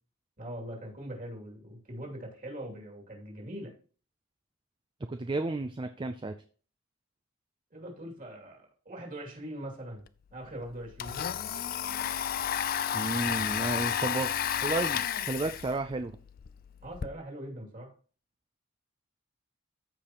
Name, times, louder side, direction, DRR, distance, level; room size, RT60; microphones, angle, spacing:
voice 1, 0.4-3.7 7.7-10.0 10.3-11.2 16.8-17.9, right 1 dB, 40° right, 0 dB, 2.7 m, -42 dB
voice 2, 5.1-6.3 12.9-14.3 14.6-16.2, right 2 dB, 25° right, 8 dB, 0.4 m, -32 dB
Domestic sounds home sounds, 10.1-10.2 10.4-17.1, left 9 dB, 45° left, 0.4 m, -32 dB
14.0 x 5.0 x 3.0 m, 0.41 s
head